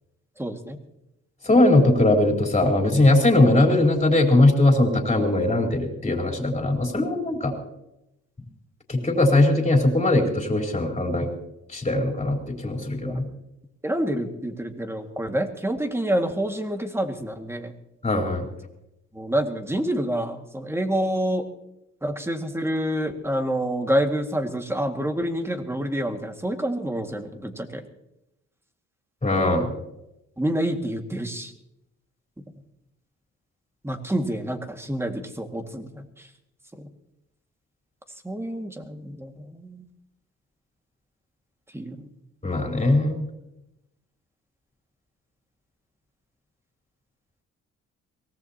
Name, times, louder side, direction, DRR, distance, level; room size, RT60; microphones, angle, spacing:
voice 1, 0.4-0.8 13.0-13.1 13.8-17.7 19.1-21.5 22.0-27.9 29.3-29.7 30.4-31.5 33.8-36.3 36.8-36.9 38.2-39.9 41.7-42.1, right 1 dB, 10° right, 5 dB, 1.9 m, -28 dB
voice 2, 1.4-7.5 8.9-11.3 11.7-13.3 18.0-18.5 29.2-29.7 42.4-43.3, left 2 dB, 20° left, 1 dB, 4.1 m, -20 dB
23.5 x 18.0 x 2.9 m, 0.87 s
cardioid pair, 90°, 30 cm